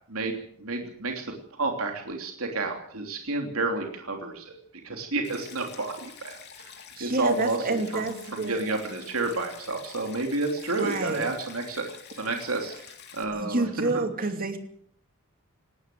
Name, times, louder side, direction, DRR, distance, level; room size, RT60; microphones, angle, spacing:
voice 1, 0.1-4.6 4.8-6.7 7.0-11.8 12.1-13.6, right 3 dB, 70° right, 3 dB, 3.2 m, -30 dB
Stream, 5.2-13.2, left 7 dB, 50° left, 3.5 m, -47 dB
voice 2, 7.0-8.6 10.8-11.3 13.3-14.6, right 2 dB, 40° right, 7 dB, 2.8 m, -29 dB
20.0 x 17.5 x 7.8 m, 0.64 s
head